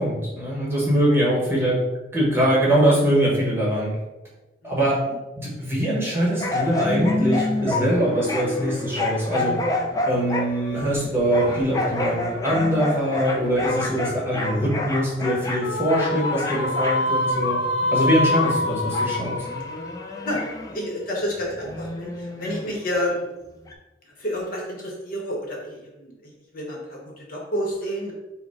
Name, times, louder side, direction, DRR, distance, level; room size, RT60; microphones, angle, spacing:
voice 1, 0.0-1.8 2.1-3.9 4.6-5.0 5.4-9.5 10.1-17.6 17.9-19.4, equal, 15° right, -5 dB, 1.2 m, -22 dB
voice 2, 4.6-5.2 20.2-20.4 20.7-23.2 24.0-28.1, equal, 50° left, -2 dB, 1.1 m, -30 dB
sound 1, 6.4-20.8 21.3-23.1 23.7-23.8, left 2 dB, 20° left, 0.5 m, -29 dB
sound 2, 15.6-21.0, left 2 dB, 75° left, 0.5 m, -26 dB
4.9 x 2.2 x 4.6 m, 1.1 s
head